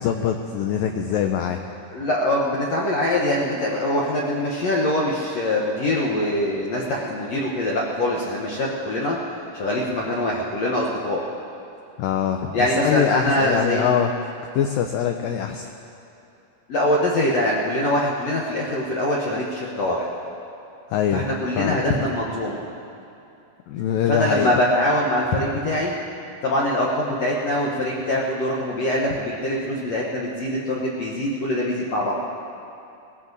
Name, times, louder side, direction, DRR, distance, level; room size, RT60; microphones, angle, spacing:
voice 1, 0.0-1.6 12.0-14.1 14.6-15.7 20.9-21.2 21.6-21.8 23.7-24.5, left 9 dB, 85° left, 5 dB, 2.0 m, -23 dB
voice 2, 1.9-9.2 9.5-11.2 12.5-13.9 16.7-20.0 21.1-22.6 24.1-25.9 26.4-32.1, left 1 dB, 70° left, -4 dB, 1.6 m, -23 dB
20.0 x 15.0 x 4.1 m, 2.7 s
omnidirectional pair, 4.8 m